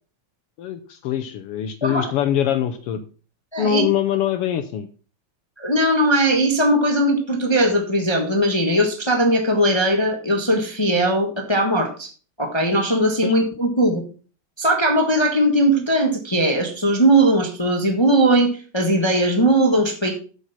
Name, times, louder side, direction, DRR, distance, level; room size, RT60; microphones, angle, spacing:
voice 1, 0.6-3.0 3.6-4.9 13.2-13.3, left 10 dB, 85° left, 7 dB, 1.3 m, -23 dB
voice 2, 3.5-3.8 5.6-12.1 12.4-14.0 14.6-20.1, right 1 dB, 45° left, 4 dB, 0.3 m, -19 dB
8.2 x 7.9 x 5.8 m, 0.38 s
omnidirectional pair, 3.6 m